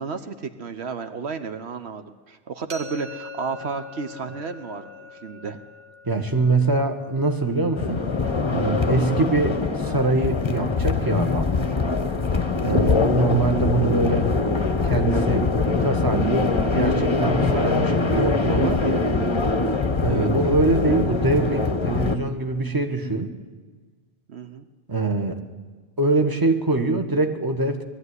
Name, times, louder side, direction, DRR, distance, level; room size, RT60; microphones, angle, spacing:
voice 1, 0.0-5.6 12.7-13.0 20.1-20.3 24.3-24.7, right 5 dB, 75° right, 9 dB, 1.3 m, -32 dB
sound 1, 2.7-8.5, left 2 dB, 60° right, 1.7 m, -43 dB
voice 2, 6.1-8.0 8.5-11.5 12.6-14.3 14.8-15.5 15.8-19.1 20.0-23.3 24.9-25.4 26.0-27.8, right 3 dB, 20° right, 6 dB, 1.5 m, -23 dB
sound 2, 7.7-22.2, left 3 dB, 25° left, 0.9 m, -23 dB
20.5 x 13.0 x 9.7 m, 1.4 s
omnidirectional pair, 1.1 m